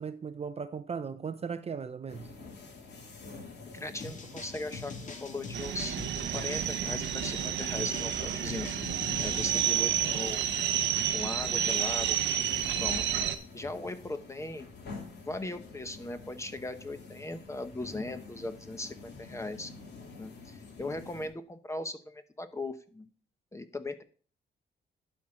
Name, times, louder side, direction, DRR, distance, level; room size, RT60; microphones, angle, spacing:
voice 1, 0.0-2.3 10.1-10.2, right 6 dB, 35° right, 0.6 m, -37 dB
sound 1, 2.1-21.3, left 4 dB, 65° left, 2.8 m, -48 dB
voice 2, 3.7-6.0 6.3-8.7 9.2-10.5 11.1-13.0 13.5-14.7 15.3-19.7 20.2-23.1 23.5-24.0, left 2 dB, 15° left, 0.9 m, -39 dB
sound 2, 4.0-9.7, left 4 dB, 40° left, 1.9 m, -43 dB
sound 3, 5.5-13.4, right 10 dB, 80° right, 0.8 m, -30 dB
11.5 x 4.5 x 5.0 m
cardioid pair, 100°, 18 cm